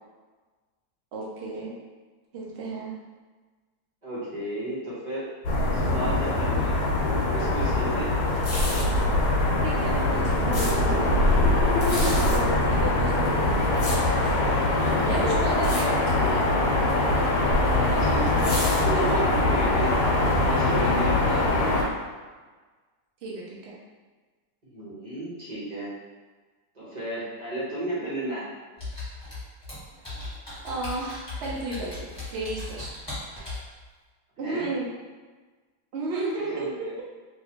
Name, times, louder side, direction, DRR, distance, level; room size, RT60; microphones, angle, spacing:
voice 1, 1.1-1.7 2.3-3.0 9.6-11.3 12.2-13.7 15.1-16.5 18.9-19.3 21.3-21.6 23.2-23.8 26.8-26.9 30.6-32.9 34.4-34.9 35.9-36.7, right 2 dB, 75° right, -4 dB, 0.6 m, -33 dB
voice 2, 4.0-5.3 5.7-6.8 7.3-8.1 12.7-12.8 14.7-15.3 15.7-15.8 17.9-20.0 20.4-21.6 24.6-25.9 26.7-28.4 34.4-34.7 36.3-36.9, right 1 dB, 30° right, -10 dB, 0.8 m, -33 dB
sound 1, 5.4-21.8, left 2 dB, 85° left, 1.4 m, -23 dB
sound 2, 8.3-9.0 9.8-10.7 11.7-12.4 13.2-14.4 14.8-15.2 15.5-15.8 16.1-16.4 17.2-19.3 19.8-19.9, left 1 dB, 45° left, 1.2 m, -34 dB
Computer keyboard, 28.8-33.7, left 2 dB, 15° left, 1.4 m, -37 dB
3.1 x 2.7 x 2.9 m, 1.3 s
omnidirectional pair, 2.1 m